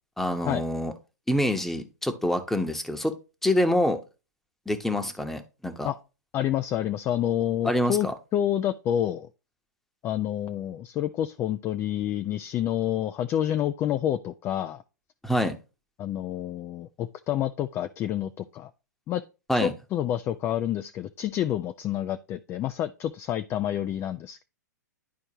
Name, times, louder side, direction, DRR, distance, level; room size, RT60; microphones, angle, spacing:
voice 1, 0.2-0.9 1.3-3.1 3.4-4.0 4.7-5.9 7.6-8.1 15.2-15.5 19.5-19.7, left 1 dB, 5° left, 0.9 m, -26 dB
voice 2, 6.3-8.1 8.3-9.3 10.0-14.8 16.0-18.7 19.1-19.2 19.6-24.4, left 11 dB, 25° left, 0.4 m, -28 dB
11.0 x 4.4 x 2.9 m
hypercardioid pair, 115°, 10 cm